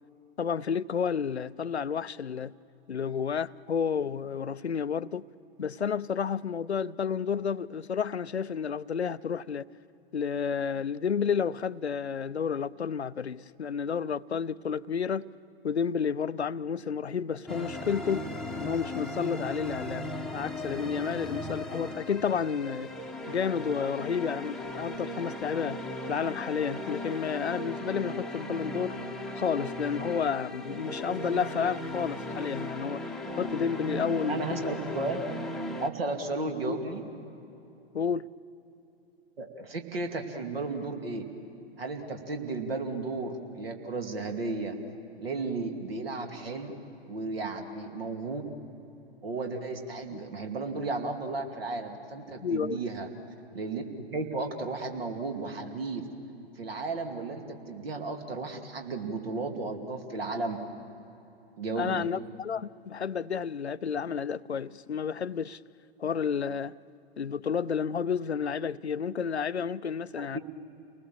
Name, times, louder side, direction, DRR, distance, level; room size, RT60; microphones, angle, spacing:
voice 1, 0.4-2.5 2.9-5.2 5.6-9.6 10.1-15.3 15.6-18.2 18.6-22.9 23.3-25.8 26.1-29.0 29.3-33.0 33.4-34.4 36.7-36.8 37.9-38.3 52.4-52.8 61.8-65.6 66.0-66.7 67.2-70.4, left 7 dB, 85° left, 0.5 m, -31 dB
sound 1, 17.5-35.9, left 1 dB, ahead, 1.0 m, -37 dB
voice 2, 34.3-35.2 35.8-37.0 39.4-41.2 41.8-44.8 45.2-46.8 47.1-48.5 49.2-53.1 53.5-53.8 54.1-56.1 56.6-60.6 61.6-62.1 70.2-70.4, right 3 dB, 65° right, 2.6 m, -34 dB
29.0 x 20.0 x 7.2 m
figure-of-eight pair, 110°, 32 cm